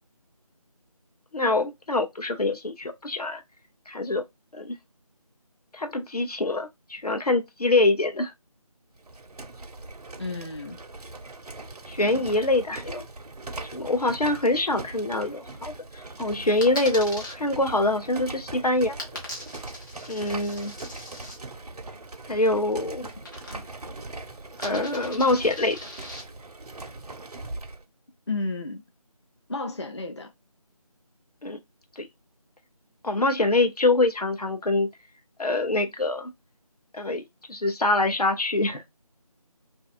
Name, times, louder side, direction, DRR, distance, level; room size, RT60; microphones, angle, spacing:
voice 1, 1.3-3.4 3.9-4.2 4.5-4.8 5.7-8.3 11.9-13.0 13.7-15.7 16.2-19.0 20.1-20.8 22.3-23.1 24.6-25.8 31.4-31.6 32.0-32.1 33.0-34.9 35.4-36.3 36.9-38.8, left 2 dB, 85° left, 0.7 m, -24 dB
sound 1, 9.0-27.8, right 2 dB, 85° right, 0.5 m, -40 dB
voice 2, 10.2-10.8 23.5-23.7 28.3-28.8 29.5-30.3, left 3 dB, 50° left, 0.4 m, -32 dB
Coin (dropping), 16.6-17.3 19.0-21.4 23.2-23.9 24.1-26.2, left 1 dB, 35° left, 0.8 m, -40 dB
2.6 x 2.3 x 2.6 m
figure-of-eight pair, 165°, 19 cm